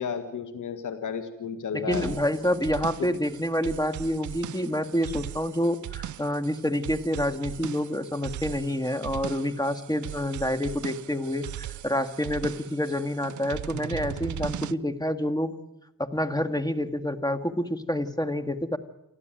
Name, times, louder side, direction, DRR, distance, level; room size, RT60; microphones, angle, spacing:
voice 1, 0.0-2.2 3.0-3.1, left 6 dB, 65° left, 8 dB, 1.9 m, -33 dB
voice 2, 1.7-15.5 16.0-18.8, left 1 dB, 10° left, 9 dB, 2.0 m, -28 dB
sound 1, 1.9-14.7, right 12 dB, 65° right, 0.7 m, -39 dB
29.0 x 12.5 x 9.2 m, 0.90 s
cardioid pair, 65°, 33 cm